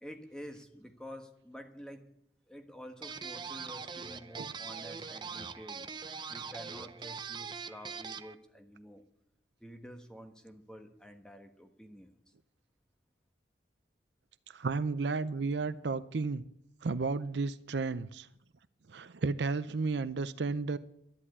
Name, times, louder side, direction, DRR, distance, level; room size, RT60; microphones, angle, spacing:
voice 1, 0.0-2.1 2.5-5.9 6.3-9.1 9.6-12.2, equal, 5° left, 5 dB, 1.4 m, -49 dB
sound 1, 3.0-8.3, right 5 dB, 25° right, 0.6 m, -42 dB
voice 2, 14.5-16.4 16.8-18.3 18.9-20.8, right 4 dB, 70° right, 14 dB, 0.6 m, -33 dB
12.0 x 11.0 x 8.4 m, 0.78 s
head